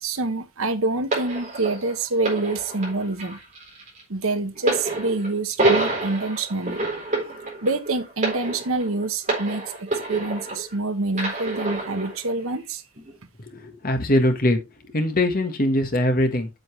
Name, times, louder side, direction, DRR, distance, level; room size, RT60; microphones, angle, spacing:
voice 1, 0.0-3.4 4.1-6.8 7.6-12.8, right 2 dB, 75° right, 1.1 m, -26 dB
sound 1, 1.1-10.8 11.1-12.2 13.0-13.1, right 2 dB, 35° right, 4.2 m, -27 dB
voice 2, 13.5-14.6 14.8-16.5, left 1 dB, 40° left, 1.5 m, -22 dB
7.9 x 7.2 x 3.2 m
head